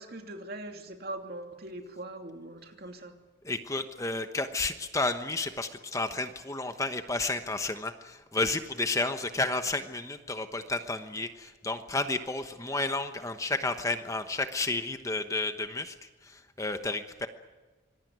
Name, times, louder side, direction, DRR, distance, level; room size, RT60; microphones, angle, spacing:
voice 1, 0.0-3.2, right 1 dB, 50° right, 4 dB, 2.8 m, -41 dB
voice 2, 3.4-15.9 16.2-17.3, left 2 dB, 15° left, 8 dB, 1.1 m, -31 dB
25.5 x 20.5 x 9.4 m, 1.3 s
head